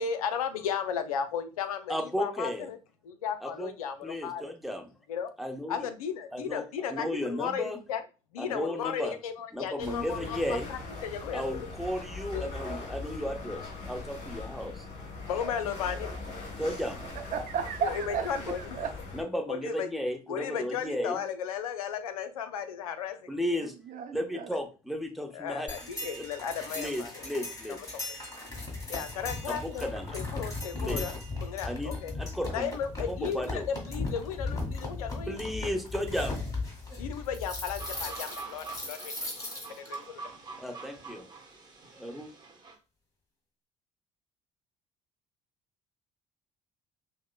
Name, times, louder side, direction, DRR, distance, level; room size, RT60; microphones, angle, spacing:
voice 1, 0.0-2.8 3.0-4.4 5.1-5.3 5.7-8.0 8.3-11.7 12.3-12.8 15.2-16.1 17.8-18.8 19.5-19.9 20.3-23.5 24.5-24.6 25.3-27.3 28.9-31.2 31.4-32.1 32.5-35.4 37.0-39.3 39.8-40.3, left 7 dB, 85° left, 0.4 m, -35 dB
voice 2, 1.9-2.7 3.4-3.7 4.0-4.8 5.4-5.8 6.3-6.6 6.9-7.8 8.4-9.2 9.5-10.7 11.3-14.9 16.6-17.0 19.1-21.2 23.3-23.7 24.1-25.7 26.2-26.3 26.8-27.8 29.5-30.2 30.8-31.0 31.6-31.9 32.2-32.7 33.1-33.6 35.3-36.4 40.6-41.2 41.9-42.3, equal, ahead, 0.8 m, -34 dB
sound 1, 9.8-19.2, left 3 dB, 40° left, 1.8 m, -41 dB
voice 3, 17.2-18.9 23.6-24.5, right 6 dB, 45° right, 0.5 m, -34 dB
sound 2, 25.7-39.9, left 2 dB, 20° left, 1.7 m, -37 dB
sound 3, 37.8-42.7, right 4 dB, 25° right, 1.0 m, -45 dB
5.9 x 2.1 x 2.2 m
hypercardioid pair, 55°, 18 cm